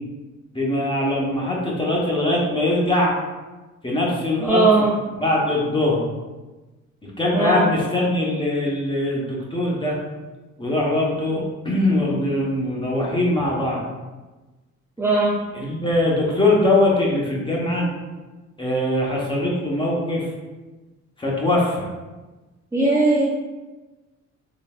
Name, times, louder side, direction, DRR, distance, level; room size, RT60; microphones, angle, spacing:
voice 1, 0.5-3.1 3.8-4.8 5.2-6.0 7.0-10.0 10.6-13.8 15.5-17.9 18.6-20.3 21.2-21.9, left 1 dB, 15° left, -4 dB, 1.0 m, -22 dB
voice 2, 4.4-4.9 7.3-7.7 15.0-15.4 22.7-23.3, right 3 dB, 10° right, -6 dB, 0.5 m, -18 dB
3.9 x 3.2 x 2.4 m, 1.2 s
cardioid pair, 90°, 30 cm